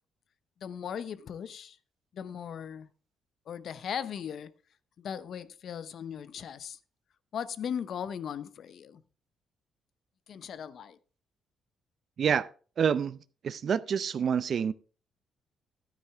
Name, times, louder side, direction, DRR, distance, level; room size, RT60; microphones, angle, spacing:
voice 1, 0.6-1.8 2.1-2.9 3.5-4.5 5.0-6.8 7.3-9.0 10.3-11.0, left 8 dB, 65° left, 0.6 m, -38 dB
voice 2, 12.8-13.2 13.4-14.7, right 7 dB, 55° right, 0.5 m, -27 dB
11.5 x 9.4 x 3.4 m
cardioid pair, 90°, 0 cm